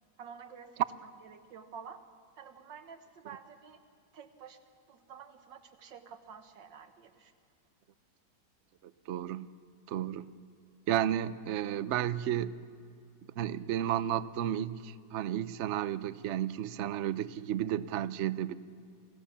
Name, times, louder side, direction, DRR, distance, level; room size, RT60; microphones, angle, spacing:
voice 1, 0.2-0.9 1.2-2.0 2.4-3.8 4.1-4.6 4.9-7.3, right 7 dB, 90° right, 8 dB, 2.0 m, -50 dB
voice 2, 9.1-9.5 9.9-10.3 10.9-12.6 13.4-18.6, right 11 dB, 60° right, 14 dB, 0.7 m, -32 dB
28.0 x 17.5 x 7.2 m, 2.3 s
omnidirectional pair, 1.9 m